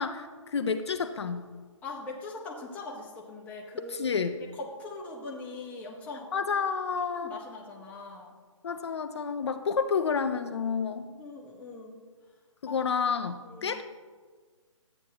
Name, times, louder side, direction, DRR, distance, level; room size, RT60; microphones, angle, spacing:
voice 1, 0.0-1.5 3.9-4.3 6.3-7.4 8.6-11.1 12.6-13.8, left 6 dB, 55° left, 9 dB, 0.5 m, -30 dB
voice 2, 1.8-4.2 4.6-6.3 7.1-8.3 11.1-12.0 12.7-12.8 13.4-13.8, left 3 dB, 10° left, -2 dB, 0.9 m, -41 dB
12.5 x 8.9 x 2.9 m, 1.5 s
hypercardioid pair, 155°, 17 cm